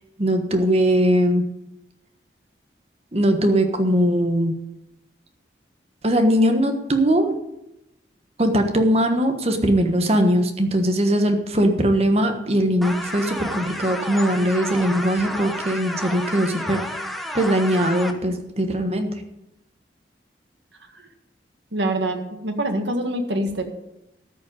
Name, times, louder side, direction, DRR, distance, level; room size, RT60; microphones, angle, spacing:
voice 1, 0.2-1.4 3.1-4.6 6.0-7.4 8.4-16.8 17.3-19.1, equal, 35° right, 6 dB, 1.3 m, -20 dB
sound 1, 12.8-18.1, equal, ahead, 1.0 m, -31 dB
voice 2, 21.7-23.6, right 1 dB, 90° right, 5 dB, 1.8 m, -25 dB
13.5 x 5.4 x 9.0 m, 0.90 s
head